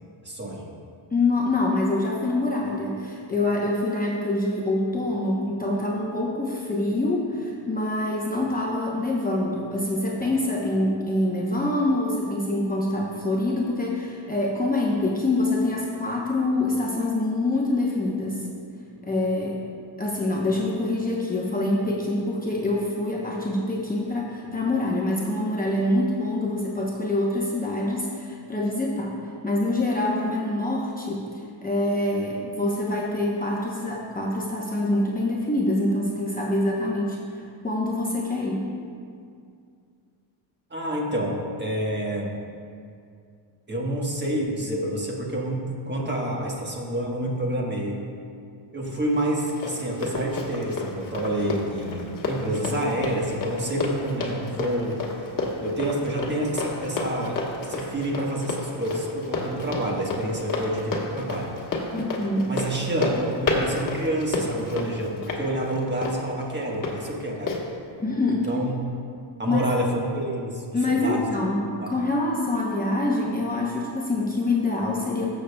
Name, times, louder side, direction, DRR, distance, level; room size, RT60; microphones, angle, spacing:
voice 1, 0.2-0.7 40.7-42.3 43.7-48.0 48.7-55.0 55.6-61.5 62.5-67.6 68.5-68.8 69.4-71.3 71.8-72.1, right 1 dB, 20° right, -1 dB, 1.3 m, -28 dB
voice 2, 1.1-18.4 19.0-19.6 20.0-29.2 29.4-31.3 31.6-38.7 61.9-62.5 68.0-68.5 69.5-69.6 70.7-75.3, left 2 dB, 20° left, -3 dB, 0.8 m, -25 dB
Run, 49.1-66.9 67.5-67.6, left 3 dB, 45° left, 1.3 m, -31 dB
15.0 x 6.8 x 2.2 m, 2.3 s
cardioid pair, 120°, 48 cm